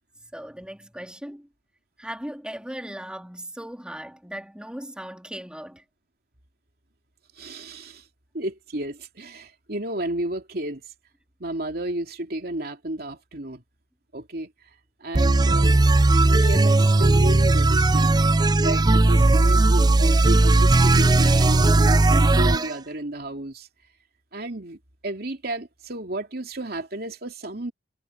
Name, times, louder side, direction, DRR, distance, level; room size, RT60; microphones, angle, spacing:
voice 1, 0.2-1.5 2.0-5.8, equal, 5° right, 3.3 m, -38 dB
voice 2, 7.4-8.0 8.3-10.8 11.4-13.6 14.1-14.5 15.0-15.8 16.2-18.1 18.5-23.7 24.3-24.8 25.0-27.7, right 1 dB, 55° right, 2.9 m, -32 dB
sound 1, 15.1-22.7, right 2 dB, 20° right, 0.4 m, -17 dB
head